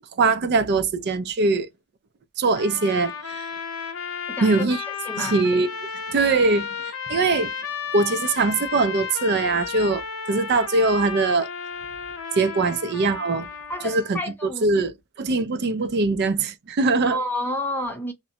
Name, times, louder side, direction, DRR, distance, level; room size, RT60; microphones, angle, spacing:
voice 1, 0.2-1.7 2.4-3.5 4.4-4.8 5.2-5.7 6.1-6.7 7.1-7.5 7.9-11.5 12.3-13.5 13.8-14.2 14.6-17.2, right 3 dB, 45° right, 0.4 m, -22 dB
sound 1, 2.5-14.1, left 7 dB, 65° left, 0.7 m, -33 dB
voice 2, 4.3-4.8 5.1-5.4 12.7-12.8 13.7-14.7 17.1-18.1, left 1 dB, 10° left, 0.6 m, -30 dB
2.5 x 2.0 x 2.6 m
head